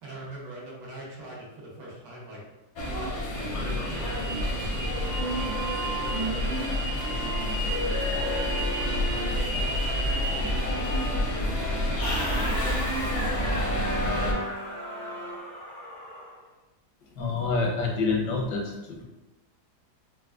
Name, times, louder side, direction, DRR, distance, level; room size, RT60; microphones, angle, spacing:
voice 1, 0.0-2.4 2.8-5.6 6.1-8.3 8.8-11.5 11.9-13.8 14.1-14.5, right 1 dB, 80° right, -5 dB, 1.6 m, -42 dB
sound 1, 2.8-14.3, equal, 65° left, 0.7 m, -28 dB
sound 2, 4.5-15.4, right 1 dB, 40° right, 0.7 m, -38 dB
sound 3, 12.0-16.4, left 1 dB, 25° left, 0.5 m, -36 dB
voice 2, 17.0-19.0, left 4 dB, 80° left, 0 dB, 1.3 m, -28 dB
4.6 x 2.1 x 2.3 m, 1.0 s
omnidirectional pair, 1.8 m